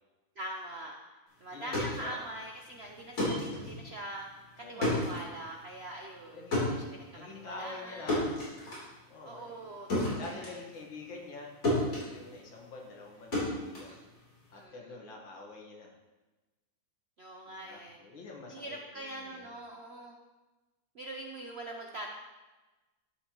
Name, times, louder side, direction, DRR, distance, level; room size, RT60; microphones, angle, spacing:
voice 1, 0.4-0.9 1.4-4.3 4.6-8.2 9.2-10.6 14.5-14.9 17.2-18.0 18.5-20.2 20.9-22.1, right 1 dB, 65° right, 1 dB, 0.6 m, -43 dB
voice 2, 1.5-2.2 4.6-5.0 6.3-6.7 7.1-8.3 9.1-9.8 10.2-11.6 11.9-13.9 14.5-15.9 17.5-19.5, left 3 dB, 85° left, -1 dB, 2.3 m, -46 dB
sound 1, 1.5-11.4 11.6-14.6, left 1 dB, 45° left, 3.7 m, -34 dB
12.0 x 7.5 x 3.0 m, 1.2 s
omnidirectional pair, 2.1 m